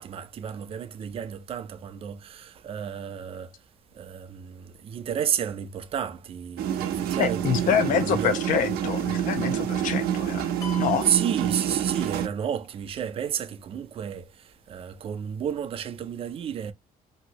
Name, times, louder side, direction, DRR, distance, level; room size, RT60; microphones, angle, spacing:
voice 1, 0.0-3.5 4.0-8.4 11.1-14.3 14.7-16.7, right 8 dB, 40° right, 0.4 m, -31 dB
sound 1, 6.6-12.3, right 10 dB, 85° right, 0.6 m, -27 dB
voice 2, 7.2-10.5 10.8-11.1, left 8 dB, 60° left, 0.4 m, -26 dB
sound 2, 10.6-12.3, left 8 dB, 20° left, 0.9 m, -43 dB
2.8 x 2.6 x 2.9 m
cardioid pair, 175°, 15 cm